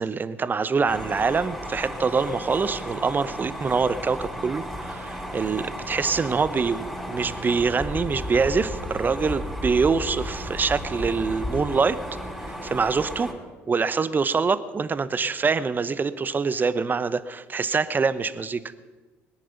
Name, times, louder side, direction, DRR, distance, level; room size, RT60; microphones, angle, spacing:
voice 1, 0.0-6.8 7.1-12.0 12.4-13.3 13.7-18.6, right 5 dB, 30° right, 15 dB, 0.9 m, -25 dB
sound 1, 0.9-13.3, equal, ahead, 5.7 m, -34 dB
21.0 x 9.2 x 5.9 m, 1.3 s
hypercardioid pair, 60°, 6 cm